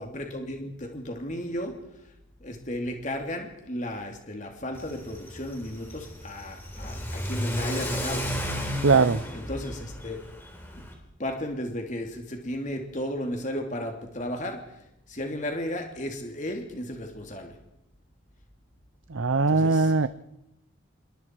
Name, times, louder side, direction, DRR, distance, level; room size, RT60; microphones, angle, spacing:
voice 1, 0.0-1.8 2.4-8.4 9.3-10.2 10.8-10.9 11.2-17.6 19.5-19.9, left 1 dB, 35° left, 2.9 m, -34 dB
Car / Accelerating revving vroom, 4.8-10.9, equal, 10° left, 3.8 m, -33 dB
voice 2, 8.8-9.2 19.1-20.1, right 4 dB, 80° right, 0.7 m, -21 dB
27.5 x 22.5 x 4.7 m
head